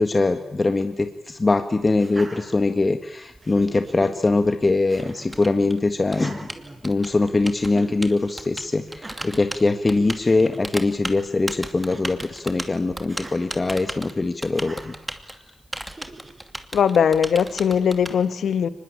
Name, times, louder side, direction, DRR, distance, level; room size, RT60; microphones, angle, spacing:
voice 1, 0.0-6.5 6.8-14.9, left 3 dB, 35° left, 1.8 m, -22 dB
Laughter, 1.9-3.0 3.4-4.1 4.9-5.4 6.1-7.3 7.7-8.0 8.9-9.5 10.0-10.1 10.2-10.6 11.8-12.3 13.1-13.4 14.5-15.0 15.8-16.4, right 2 dB, 35° right, 5.7 m, -42 dB
Typing, 3.3-18.1, right 1 dB, 15° right, 2.6 m, -36 dB
voice 2, 16.7-18.7, left 7 dB, 75° left, 1.3 m, -20 dB
24.0 x 20.5 x 8.8 m
supercardioid pair, 45°, 0 cm